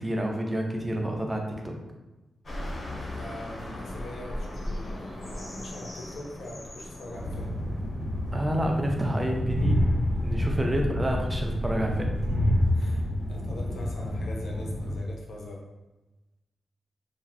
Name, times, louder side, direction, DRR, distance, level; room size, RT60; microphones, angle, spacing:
voice 1, 0.0-1.8 8.3-9.8 10.2-12.2, right 1 dB, 10° right, 1 dB, 0.4 m, -29 dB
sound 1, 2.4-9.5, left 1 dB, 35° left, 0.5 m, -38 dB
voice 2, 3.0-7.6 10.4-10.6 12.7-15.6, left 1 dB, 85° left, 0 dB, 0.6 m, -42 dB
Train, 7.1-15.0, left 1 dB, 55° right, 0.7 m, -28 dB
3.0 x 2.4 x 2.5 m, 1.1 s
wide cardioid pair, 175°, 0 cm